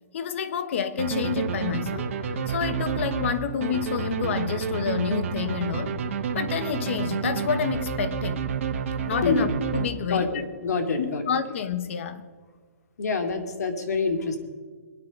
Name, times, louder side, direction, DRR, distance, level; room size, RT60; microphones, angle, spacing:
voice 1, 0.1-2.1 2.5-6.0 6.3-8.4 9.1-10.4 10.9-12.2, left 7 dB, 45° left, 13 dB, 1.2 m, -28 dB
sound 1, 1.0-10.3, right 6 dB, 50° right, 1.8 m, -29 dB
voice 2, 10.6-11.2 13.0-14.4, left 4 dB, 70° left, 7 dB, 2.6 m, -26 dB
24.5 x 10.0 x 5.4 m, 1.5 s
hypercardioid pair, 165°, 9 cm